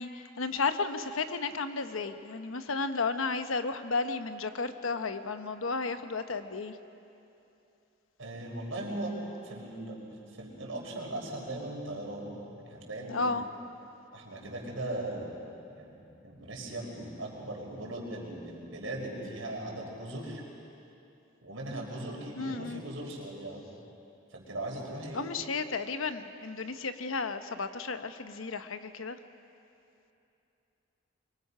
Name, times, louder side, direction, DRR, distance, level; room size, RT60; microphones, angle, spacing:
voice 1, 0.0-6.7 13.1-13.4 22.4-22.8 25.1-29.2, left 4 dB, 80° left, 9 dB, 1.0 m, -33 dB
voice 2, 8.2-9.1 9.4-13.3 14.1-15.4 15.7-20.4 21.4-23.6 24.3-25.2, right 1 dB, 80° right, -2 dB, 5.0 m, -39 dB
24.0 x 23.5 x 5.6 m, 2.8 s
head